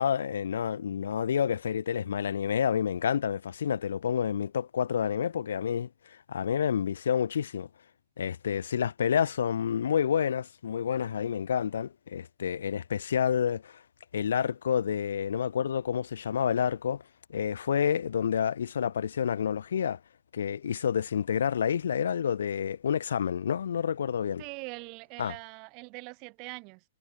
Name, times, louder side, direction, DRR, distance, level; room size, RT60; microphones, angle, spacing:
voice 1, 0.0-5.9 6.3-7.7 8.2-13.8 14.1-17.0 17.3-20.0 20.3-24.4 25.2-25.3, left 8 dB, 75° left, 1.3 m, -29 dB
voice 2, 24.4-26.8, right 31 dB, 40° right, 2.9 m, -42 dB
hypercardioid pair, 120°, 0 cm